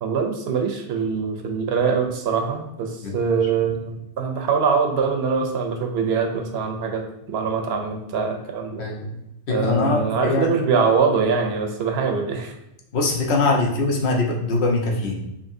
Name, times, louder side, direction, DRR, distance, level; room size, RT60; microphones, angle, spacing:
voice 1, 0.0-7.0 7.3-8.9 9.5-12.5, right 5 dB, 70° right, 4 dB, 0.8 m, -23 dB
voice 2, 8.8-9.2 9.5-10.5 12.9-15.3, left 3 dB, 75° left, 1 dB, 1.0 m, -22 dB
5.0 x 2.7 x 2.6 m, 0.86 s
omnidirectional pair, 1.1 m